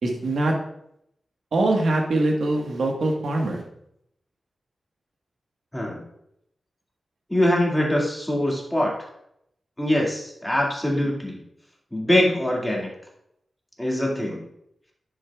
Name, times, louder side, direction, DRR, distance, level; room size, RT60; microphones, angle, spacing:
voice 1, 0.0-0.5 1.5-3.6, right 2 dB, 80° right, 1 dB, 1.3 m, -23 dB
voice 2, 7.3-8.9 9.8-11.4 11.9-12.9 13.8-14.4, left 1 dB, 5° left, -2 dB, 2.0 m, -23 dB
10.5 x 7.2 x 2.3 m, 0.75 s
wide cardioid pair, 105°, 0 cm